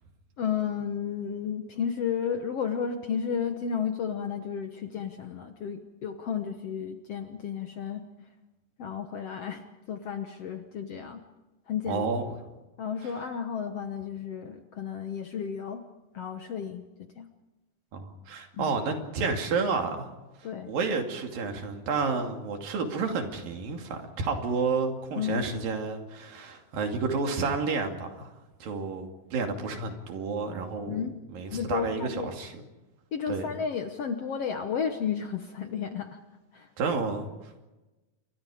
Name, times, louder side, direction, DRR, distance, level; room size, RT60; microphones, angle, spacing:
voice 1, 0.4-8.0 8.8-11.2 11.7-12.0 12.8-15.8 16.1-16.9 17.1-17.3 18.5-18.8 20.4-20.7 25.2-25.4 30.9-31.1 31.5-32.3 33.1-36.2 36.5-36.7, left 7 dB, 60° left, 6 dB, 1.7 m, -32 dB
voice 2, 11.9-12.3 17.9-20.1 20.4-28.3 28.6-32.6 33.3-33.5 36.8-37.7, right 4 dB, 75° right, 4 dB, 4.3 m, -30 dB
28.5 x 24.0 x 5.0 m, 1.1 s
omnidirectional pair, 4.1 m